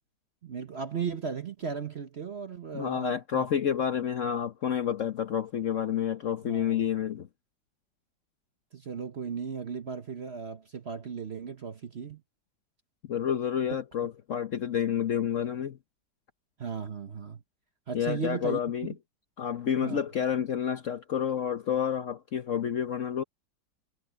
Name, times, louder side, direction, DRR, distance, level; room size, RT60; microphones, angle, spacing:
voice 1, 0.4-3.5 6.5-6.7 8.7-12.2 16.6-17.4 17.9-18.6 19.8-20.0, right 6 dB, 45° right, 0.9 m, -36 dB
voice 2, 2.7-7.3 13.1-15.8 17.9-18.9 19.4-23.2, left 8 dB, 55° left, 0.9 m, -29 dB
omnidirectional pair, 2.0 m